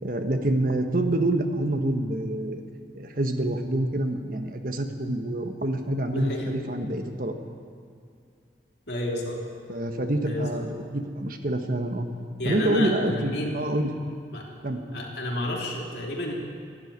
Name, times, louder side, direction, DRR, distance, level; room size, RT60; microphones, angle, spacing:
voice 1, 0.0-2.6 2.9-7.3 9.7-12.0 12.4-13.9 14.6-14.8, right 1 dB, 50° right, 5 dB, 1.3 m, -27 dB
voice 2, 6.1-6.5 8.9-9.4 10.2-10.6 12.4-13.6 14.3-14.4 14.9-16.3, left 1 dB, 70° left, -2 dB, 3.2 m, -30 dB
12.5 x 12.0 x 9.6 m, 2.3 s
head